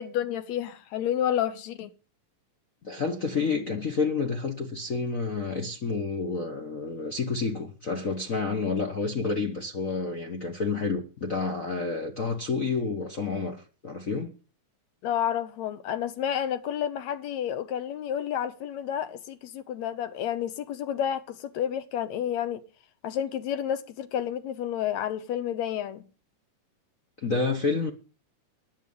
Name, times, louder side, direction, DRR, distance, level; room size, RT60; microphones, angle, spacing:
voice 1, 0.0-1.9 15.0-22.6 23.0-26.1, left 10 dB, 75° left, 2.2 m, -30 dB
voice 2, 2.8-14.3 27.2-27.9, left 4 dB, 55° left, 0.9 m, -29 dB
15.0 x 10.0 x 5.4 m
omnidirectional pair, 3.3 m